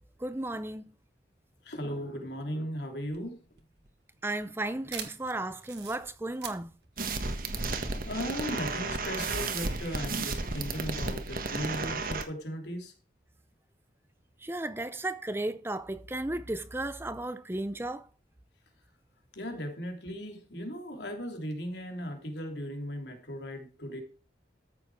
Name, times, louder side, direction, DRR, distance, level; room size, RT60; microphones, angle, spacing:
voice 1, 0.2-0.8 4.2-6.7 14.4-18.0, right 2 dB, 15° right, 0.5 m, -34 dB
voice 2, 1.6-3.4 8.0-12.9 19.3-24.0, equal, 75° left, 3.1 m, -37 dB
sound 1, 3.0-8.2, right 8 dB, 70° right, 1.6 m, -45 dB
sound 2, 7.0-12.2, right 3 dB, 50° right, 1.5 m, -33 dB
14.0 x 7.0 x 4.7 m
head